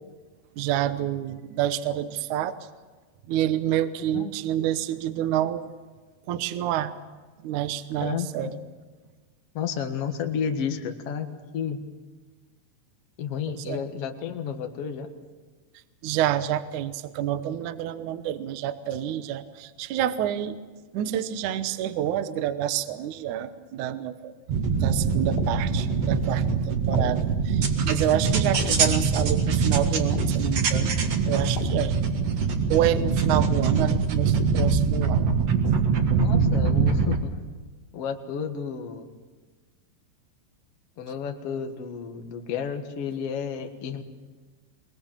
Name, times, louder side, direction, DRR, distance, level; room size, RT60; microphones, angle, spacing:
voice 1, 0.5-2.6 3.3-5.7 6.3-6.9 7.4-8.6 13.5-13.8 16.0-20.6 20.9-24.3 24.7-30.9 31.3-32.0 32.7-35.4, right 11 dB, 90° right, 11 dB, 1.7 m, -28 dB
voice 2, 8.0-8.5 9.5-11.8 13.2-15.1 28.7-29.0 36.2-37.3 37.9-39.1 41.0-44.0, left 7 dB, 55° left, 5 dB, 1.7 m, -31 dB
sound 1, 24.5-37.2, right 5 dB, 55° right, 1.9 m, -23 dB
sound 2, 25.4-26.1 26.9-27.7 28.5-29.4 30.1-30.9 31.6-32.3 32.9-33.6 34.4-35.0, left 7 dB, 80° left, 4.3 m, -36 dB
23.0 x 21.5 x 7.4 m, 1.3 s
omnidirectional pair, 5.0 m